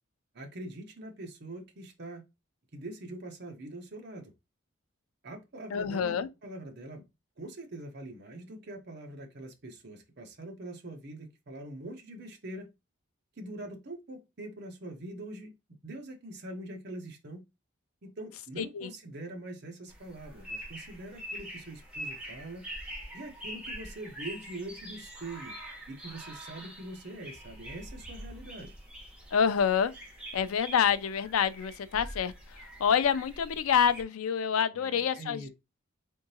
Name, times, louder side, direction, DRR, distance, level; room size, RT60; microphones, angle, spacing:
voice 1, 0.3-2.2 2.7-4.3 5.2-6.2 6.4-7.0 7.4-12.7 13.4-15.5 15.8-17.5 18.0-22.7 23.1-25.6 25.9-28.7 34.7-35.5, right 1 dB, 50° right, 0.8 m, -43 dB
voice 2, 5.7-6.3 18.6-18.9 29.3-29.9 30.3-32.3 32.8-35.5, left 7 dB, 85° left, 0.4 m, -27 dB
sound 1, 19.9-34.0, equal, 5° right, 1.0 m, -45 dB
3.7 x 3.6 x 2.8 m
head